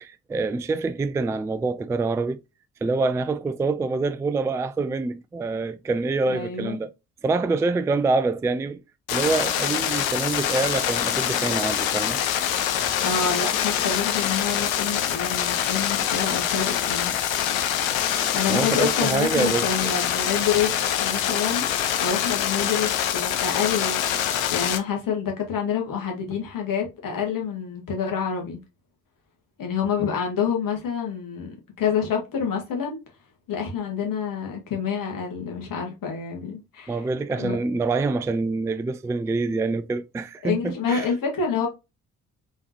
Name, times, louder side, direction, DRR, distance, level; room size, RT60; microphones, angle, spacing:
voice 1, 0.0-2.4 2.8-6.9 7.2-8.8 9.1-12.2 18.5-19.9 36.9-41.1, right 3 dB, 10° right, 0.3 m, -26 dB
voice 2, 6.3-6.8 13.0-17.1 18.3-20.7 21.0-24.0 24.5-28.6 29.6-33.0 33.5-37.1 37.4-37.5 40.4-41.7, left 7 dB, 55° left, 2.1 m, -27 dB
sound 1, 9.1-24.8, left 10 dB, 75° left, 0.7 m, -25 dB
4.2 x 3.9 x 2.9 m
figure-of-eight pair, 45°, 41 cm